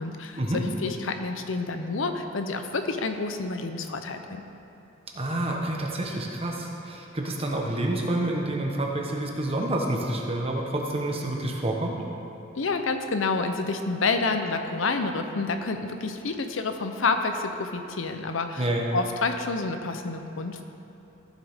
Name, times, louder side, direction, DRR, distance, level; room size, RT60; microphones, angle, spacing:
voice 1, 0.0-4.4 12.6-20.6, left 3 dB, 80° left, 6 dB, 0.7 m, -29 dB
voice 2, 5.1-12.0 18.6-18.9, right 1 dB, 30° right, 0 dB, 1.2 m, -28 dB
14.5 x 7.4 x 3.6 m, 2.8 s
head